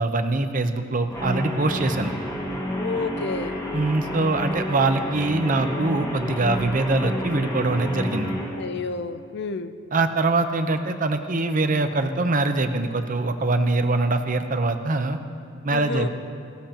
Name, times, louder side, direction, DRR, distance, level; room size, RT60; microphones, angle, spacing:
voice 1, 0.0-2.1 3.7-8.3 9.9-15.2 15.6-16.1, right 2 dB, 40° right, 7 dB, 0.8 m, -23 dB
Guitar, 1.1-8.5, left 1 dB, 20° left, 1.8 m, -30 dB
voice 2, 2.8-3.6 8.5-9.7 15.7-16.1, left 4 dB, 60° left, 11 dB, 0.5 m, -30 dB
18.0 x 16.0 x 2.9 m, 2.4 s
head